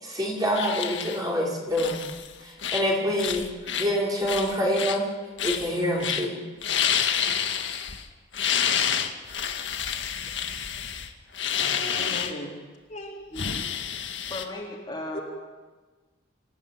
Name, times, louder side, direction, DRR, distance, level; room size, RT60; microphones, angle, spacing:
voice 1, 0.0-2.0 2.4-5.0 5.4-6.4, equal, 20° right, -3 dB, 5.1 m, -26 dB
sound 1, 0.5-1.2 1.7-2.3 2.6-2.9 3.2-3.9 4.3-5.0 5.4-5.7 6.0-6.3 6.6-8.0 8.3-12.3 13.4-14.4, left 8 dB, 70° left, 1.8 m, -28 dB
voice 2, 11.5-12.5 12.9-13.6 15.1-15.2, equal, 40° left, -2 dB, 4.3 m, -38 dB
voice 3, 13.3-13.6 14.3-15.2, left 1 dB, 20° left, -3 dB, 3.9 m, -36 dB
27.0 x 16.0 x 9.5 m, 1.3 s
head